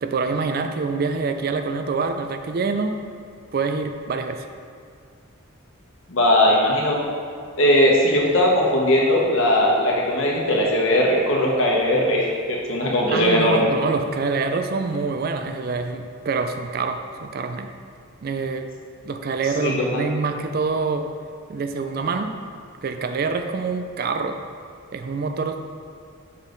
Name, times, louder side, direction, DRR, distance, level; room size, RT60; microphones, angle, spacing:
voice 1, 0.0-3.1 3.5-4.5 13.1-17.7 18.2-18.7 19.1-21.1 21.5-22.4 22.8-24.4 24.9-25.7, right 4 dB, 45° right, 7 dB, 0.3 m, -26 dB
voice 2, 6.1-7.0 7.6-13.7 19.6-20.0, left 1 dB, 65° left, -2 dB, 1.1 m, -19 dB
6.4 x 5.4 x 3.9 m, 2.2 s
head